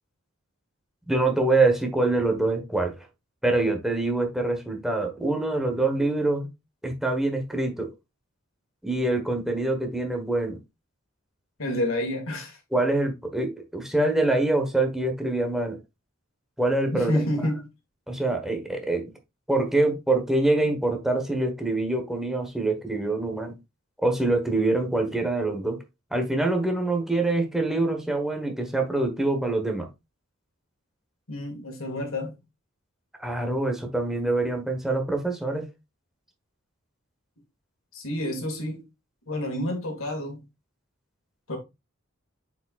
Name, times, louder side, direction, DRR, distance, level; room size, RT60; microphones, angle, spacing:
voice 1, 1.1-3.1 3.4-6.5 6.8-7.9 8.8-10.6 12.7-15.8 16.6-17.2 18.1-19.1 19.5-23.5 24.0-25.8 26.1-29.9 33.2-35.6, right 2 dB, ahead, 1.3 m, -25 dB
voice 2, 11.6-12.6 16.9-17.7 31.3-32.3 37.9-38.9 39.3-40.4 41.5-41.6, left 1 dB, 85° left, 2.2 m, -29 dB
8.0 x 4.9 x 2.5 m
head